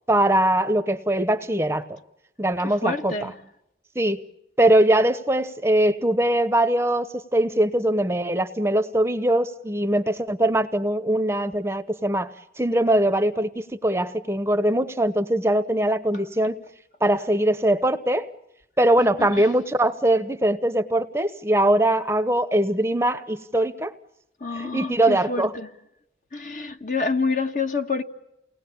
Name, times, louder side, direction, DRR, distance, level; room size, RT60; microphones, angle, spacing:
voice 1, 0.1-2.0 2.4-3.3 3.9-4.2 4.6-12.3 12.6-16.6 17.0-18.3 18.8-23.9 24.5-25.5, right 1 dB, 15° right, 0.9 m, -22 dB
voice 2, 2.8-3.3 19.2-19.3 24.4-25.7 26.3-28.0, left 4 dB, 45° left, 1.5 m, -27 dB
29.0 x 19.5 x 8.7 m
head